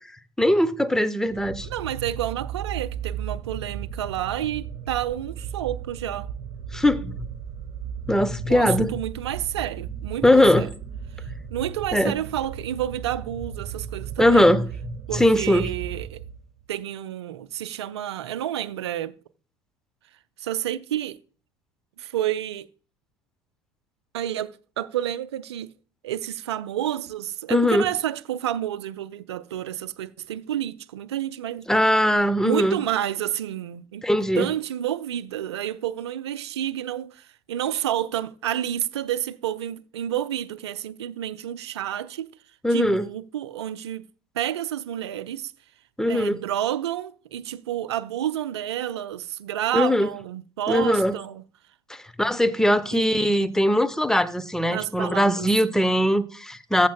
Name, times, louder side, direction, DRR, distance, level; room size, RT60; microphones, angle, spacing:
voice 1, 0.4-1.7 6.7-7.2 8.1-8.9 10.2-10.7 11.9-12.1 14.2-15.7 27.5-27.8 31.7-32.8 34.0-34.5 42.6-43.0 46.0-46.4 49.7-50.1 50.7-51.1 51.9-56.9, left 1 dB, 5° left, 0.9 m, -20 dB
sound 1, 1.3-16.6, right 8 dB, 45° right, 1.5 m, -36 dB
voice 2, 1.6-6.3 8.5-10.7 11.5-14.5 15.1-16.2 16.7-19.2 20.4-21.2 22.0-22.7 24.1-25.7 26.0-31.7 32.4-42.3 42.7-44.0 44.3-45.5 46.1-51.4 52.9-53.5 54.7-55.5, right 11 dB, 75° right, 0.6 m, -30 dB
14.5 x 7.3 x 2.2 m
figure-of-eight pair, 65°, 14 cm